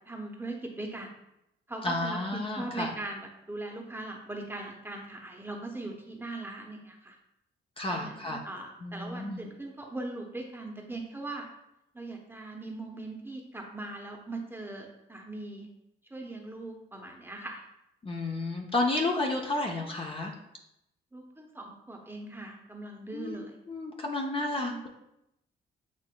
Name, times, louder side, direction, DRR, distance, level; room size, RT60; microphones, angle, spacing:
voice 1, 0.1-1.1 1.7-7.2 7.9-11.5 11.9-15.7 16.1-17.6 21.1-23.5 24.6-24.9, right 2 dB, 10° right, 1 dB, 0.8 m, -40 dB
voice 2, 1.8-2.9 7.8-8.4 8.8-9.4 18.0-20.3 23.1-24.9, left 2 dB, 25° left, 1 dB, 0.7 m, -31 dB
8.3 x 2.9 x 2.2 m, 0.84 s
cardioid pair, 90°, 20 cm